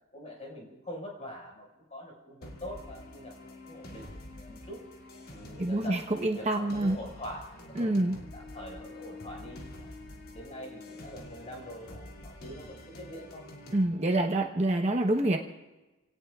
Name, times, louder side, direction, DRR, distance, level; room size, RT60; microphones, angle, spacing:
voice 1, 0.1-4.8 5.3-8.0 8.3-9.9 10.3-13.4, equal, 30° left, 0 dB, 5.3 m, -44 dB
sound 1, 2.4-13.8, left 1 dB, 85° left, 2.6 m, -47 dB
voice 2, 5.6-7.0 7.8-8.2 13.7-15.4, right 1 dB, 30° right, 2 dB, 1.0 m, -27 dB
29.0 x 18.0 x 2.4 m, 1.1 s
head